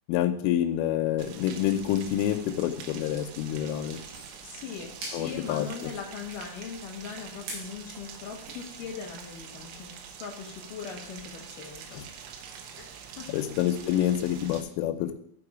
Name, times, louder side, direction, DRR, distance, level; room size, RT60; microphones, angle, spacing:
voice 1, 0.1-4.0 5.1-5.7 11.9-12.0 13.3-15.2, left 11 dB, 90° left, 8 dB, 3.3 m, -27 dB
Rain, 1.2-14.6, right 7 dB, 85° right, 3.6 m, -45 dB
sound 1, 3.6-8.7, right 2 dB, 65° right, 5.2 m, -46 dB
voice 2, 4.4-12.0 12.8-12.9 13.2-13.3, left 6 dB, 65° left, 1 dB, 2.2 m, -40 dB
14.5 x 4.9 x 5.0 m, 0.70 s
omnidirectional pair, 5.6 m